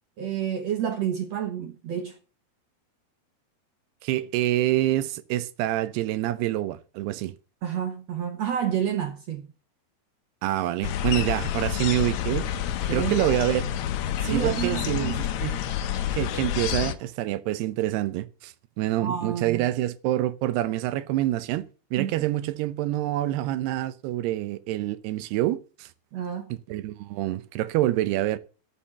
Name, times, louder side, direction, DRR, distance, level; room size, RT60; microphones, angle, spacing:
voice 1, 0.2-2.2 7.6-9.5 12.9-13.3 14.3-15.2 19.0-19.7 22.0-22.1 26.1-26.5, right 9 dB, 65° right, 1.7 m, -29 dB
voice 2, 4.0-7.3 10.4-12.5 12.9-13.7 14.2-15.6 16.1-21.6 21.9-25.9 26.5-28.4, right 14 dB, 90° right, 2.9 m, -26 dB
sound 1, 10.8-16.9, left 10 dB, 75° left, 1.7 m, -28 dB
13.0 x 7.4 x 7.1 m
omnidirectional pair, 4.6 m